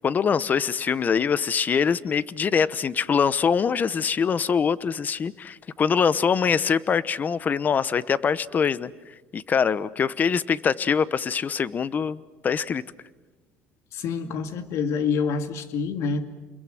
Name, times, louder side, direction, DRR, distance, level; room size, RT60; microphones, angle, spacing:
voice 1, 0.0-8.9 9.3-12.8, left 6 dB, 35° left, 18 dB, 0.9 m, -23 dB
voice 2, 13.9-16.3, left 5 dB, 60° left, 8 dB, 2.4 m, -27 dB
29.5 x 22.0 x 7.8 m, 1.2 s
cardioid pair, 110°, 5 cm